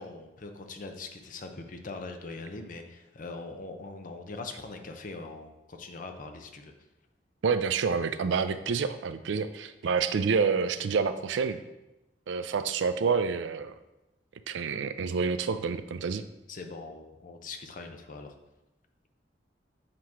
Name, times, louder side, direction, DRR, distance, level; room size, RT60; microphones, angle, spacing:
voice 1, 0.0-6.7 16.5-18.3, left 3 dB, 45° left, 5 dB, 0.6 m, -42 dB
voice 2, 7.4-11.6 12.3-13.7 14.5-16.2, right 5 dB, 90° right, 11 dB, 0.4 m, -28 dB
7.5 x 3.0 x 4.7 m, 0.95 s
head